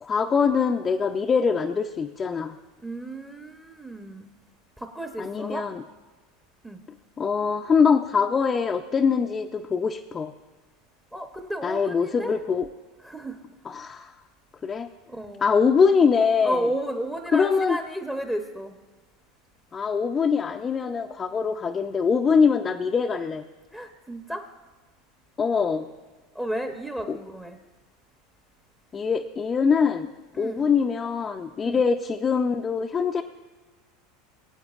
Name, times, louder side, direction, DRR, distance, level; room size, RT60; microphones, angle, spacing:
voice 1, 0.0-2.6 5.2-5.8 7.2-10.3 11.6-12.7 13.7-14.1 14.6-14.9 15.4-16.6 17.3-17.8 19.7-23.4 25.4-25.9 27.1-27.2 28.9-30.1 30.4-33.2, left 5 dB, 25° left, 3 dB, 0.5 m, -23 dB
voice 2, 2.8-4.3 4.8-5.6 6.6-6.8 11.1-12.4 13.0-13.4 15.1-15.5 16.4-18.8 23.7-24.4 26.3-27.6 30.3-30.7 31.6-31.8, right 1 dB, 10° right, 5 dB, 0.8 m, -32 dB
22.0 x 8.6 x 2.4 m, 1.3 s
supercardioid pair, 115°, 0 cm